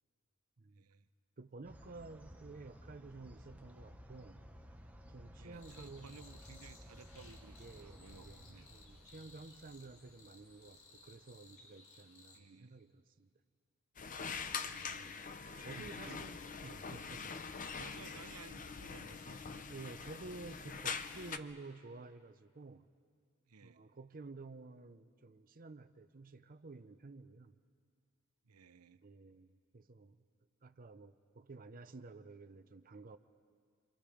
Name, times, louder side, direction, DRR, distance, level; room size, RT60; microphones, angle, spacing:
voice 1, 0.7-1.1 5.3-8.7 12.3-12.8 14.2-15.2 15.7-16.3 17.7-20.0 23.5-23.9 28.5-29.0, right 5 dB, 85° right, 13 dB, 0.7 m, -57 dB
voice 2, 1.4-4.4 5.1-6.1 7.5-13.3 14.7-17.6 19.7-22.9 23.6-27.5 29.0-30.2 30.6-33.2, right 3 dB, 40° right, 9 dB, 0.6 m, -52 dB
sound 1, 1.6-11.5, equal, 5° right, 1.0 m, -56 dB
sound 2, 5.5-12.4, left 3 dB, 65° left, 2.3 m, -61 dB
sound 3, 14.0-21.4, left 5 dB, 35° left, 0.7 m, -44 dB
30.0 x 24.0 x 5.0 m, 2.1 s
head